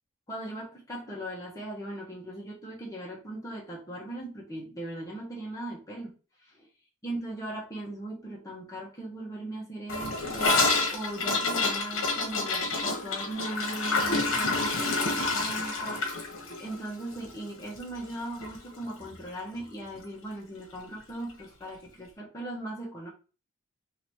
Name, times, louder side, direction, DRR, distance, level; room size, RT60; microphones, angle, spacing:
voice 1, 0.3-6.1 6.4-6.7 7.0-16.2 16.6-23.1, right 1 dB, 15° left, -4 dB, 1.3 m, -39 dB
Gurgling / Toilet flush, 9.9-18.2 18.4-18.6 18.8-19.3 19.6-19.7 19.9-20.0 21.0-21.1, left 3 dB, 70° left, 1.3 m, -28 dB
4.0 x 2.9 x 3.1 m, 0.33 s
head